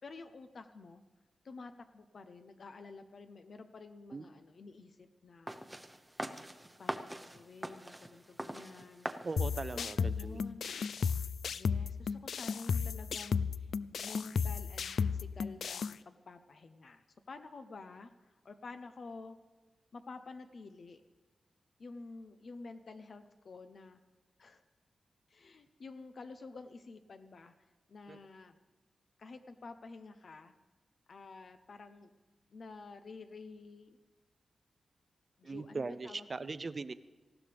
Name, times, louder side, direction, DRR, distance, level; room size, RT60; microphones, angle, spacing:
voice 1, 0.0-1.0 1.4-5.6 6.2-6.5 6.8-9.1 9.7-10.7 11.5-19.4 19.9-21.0 21.8-24.0 24.4-24.6 25.3-27.5 27.9-28.6 29.2-30.5 31.1-32.1 32.5-34.0 35.4-36.5, left 3 dB, 55° left, 8 dB, 0.7 m, -50 dB
sound 1, 5.5-10.5, right 1 dB, 10° right, 0.8 m, -44 dB
voice 2, 9.2-10.4 28.1-28.2 35.4-36.9, right 3 dB, 35° right, 14 dB, 0.5 m, -40 dB
sound 2, 9.4-15.9, left 6 dB, 85° left, 0.3 m, -34 dB
19.0 x 15.5 x 3.5 m, 1.3 s
wide cardioid pair, 125°, 0 cm